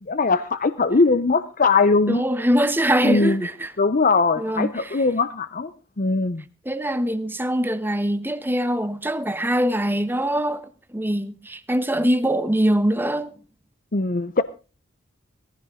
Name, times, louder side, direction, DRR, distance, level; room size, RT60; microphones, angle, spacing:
voice 1, 0.1-2.2 3.0-3.4 3.8-5.7 6.0-6.4 13.9-14.4, left 3 dB, 45° left, 0.7 m, -20 dB
voice 2, 2.1-3.7 4.4-5.0 6.6-13.3, equal, 10° right, 1.1 m, -23 dB
18.5 x 14.5 x 3.7 m
head